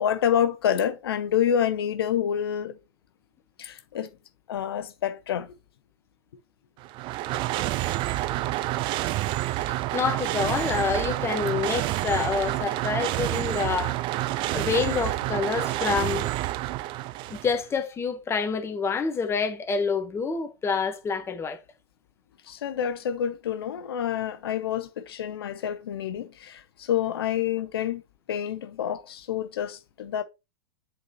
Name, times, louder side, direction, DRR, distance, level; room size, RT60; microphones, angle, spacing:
voice 1, 0.0-2.8 3.6-4.1 4.5-5.5 7.3-7.4 22.4-28.0 28.3-30.2, left 9 dB, 75° left, 0.7 m, -28 dB
sound 1, 6.8-17.6, right 16 dB, 40° right, 0.4 m, -28 dB
voice 2, 9.7-13.9 14.5-16.3 17.3-21.6, left 5 dB, 20° left, 1.2 m, -27 dB
7.8 x 4.1 x 3.0 m
hypercardioid pair, 105°, 13 cm